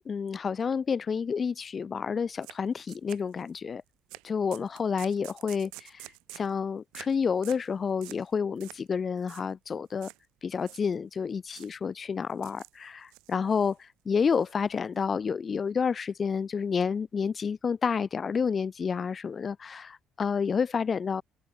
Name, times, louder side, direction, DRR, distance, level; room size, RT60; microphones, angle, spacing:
voice 1, 0.1-3.8 4.2-10.1 10.4-21.2, left 6 dB, 40° left, 0.7 m, -29 dB
sound 1, 2.4-2.6 2.9-3.6 4.1-4.2 4.5-6.5 6.9-7.2 7.4-7.7 8.0-8.3 8.6-8.9 9.2-9.5 10.0-10.2 10.6-11.2 11.5-11.8 12.3-12.8 13.1-13.8 14.2-15.0, right 27 dB, 90° right, 1.0 m, -48 dB
supercardioid pair, 80°, 0 cm